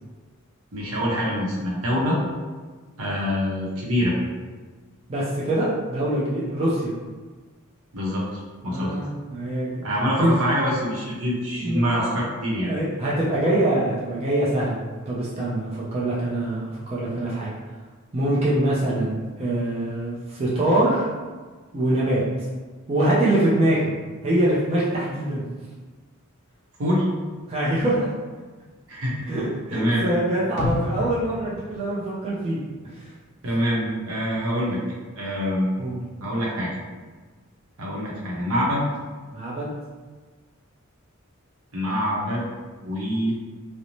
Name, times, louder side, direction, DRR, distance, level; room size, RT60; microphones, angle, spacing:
voice 1, 0.7-2.2 3.0-4.2 7.9-8.9 9.8-12.7 13.3-13.4 26.8-27.1 28.9-29.1 29.7-30.1 33.4-34.8 35.2-35.7 36.2-36.7 37.8-38.8 41.7-42.4 42.8-43.3, equal, 70° right, -4 dB, 0.7 m, -25 dB
voice 2, 5.1-6.9 8.7-9.8 10.2-10.3 11.6-12.1 12.6-14.8 15.1-17.6 18.1-21.1 21.7-22.2 22.9-23.9 24.2-25.4 27.5-28.1 29.3-32.6 35.8-36.0 39.3-39.7, right 1 dB, 30° right, -7 dB, 0.4 m, -24 dB
sound 1, 30.6-32.7 33.1-33.2, left 2 dB, 55° left, 0.3 m, -31 dB
2.6 x 2.0 x 2.9 m, 1.4 s
head